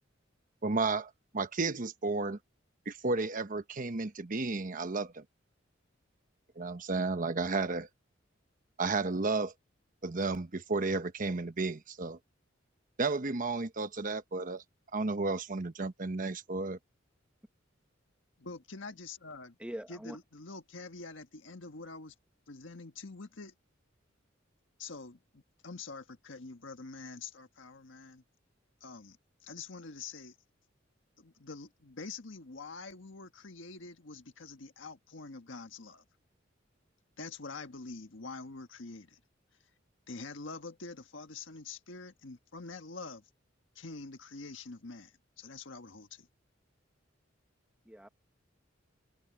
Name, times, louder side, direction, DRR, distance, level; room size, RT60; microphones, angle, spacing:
voice 1, 0.6-2.4 2.9-5.2 6.6-7.9 8.8-9.5 10.0-12.2 13.0-14.6 14.9-16.8, right 3 dB, 45° right, 1.0 m, -32 dB
voice 2, 18.4-19.6 19.9-22.1 22.5-23.5 24.8-28.2 28.8-30.4 31.2-36.0 37.2-39.2 40.1-43.3 43.8-46.3, left 3 dB, 75° left, 1.6 m, -46 dB
voice 3, 19.6-20.2 47.9-48.1, equal, 5° right, 1.6 m, -42 dB
head